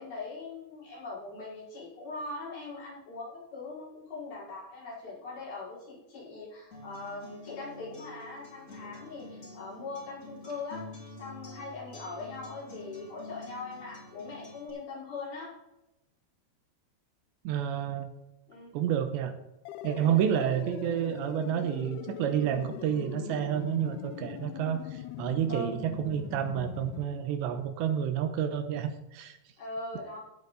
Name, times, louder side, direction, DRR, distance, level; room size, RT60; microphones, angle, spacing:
voice 1, 0.0-15.5 18.5-18.7 19.9-20.2 25.5-25.7 29.6-30.2, left 3 dB, 55° left, -8 dB, 7.4 m, -41 dB
Acoustic guitar, 6.7-14.7, left 1 dB, 20° left, 3.7 m, -48 dB
voice 2, 17.4-18.1 18.7-19.3 19.8-29.4, right 9 dB, 80° right, 8 dB, 3.1 m, -30 dB
sound 1, 19.7-27.1, left 13 dB, 85° left, 2.9 m, -41 dB
16.5 x 8.7 x 4.1 m, 0.94 s
omnidirectional pair, 5.2 m